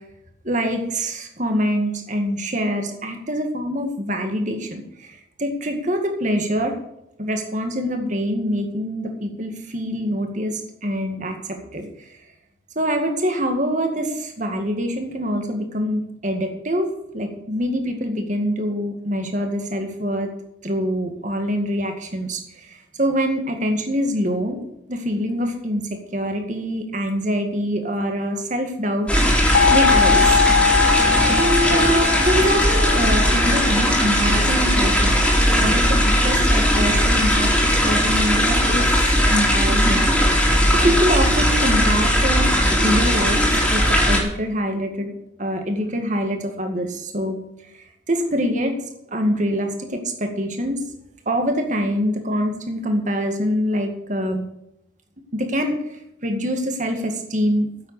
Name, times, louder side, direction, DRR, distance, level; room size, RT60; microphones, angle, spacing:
voice 1, 0.4-6.8 7.2-12.1 12.8-20.3 20.6-24.6 24.9-29.1 29.4-30.4 31.2-38.9 39.3-40.0 40.4-45.1 45.4-47.4 48.1-48.8 49.1-50.8 51.3-54.4 55.3-55.7 56.2-57.9, equal, 40° right, 4 dB, 2.0 m, -25 dB
sound 1, 29.1-44.2, equal, 5° left, 2.9 m, -18 dB
sound 2, 29.5-34.2, left 6 dB, 55° left, 0.4 m, -21 dB
9.5 x 8.0 x 8.2 m, 0.83 s
head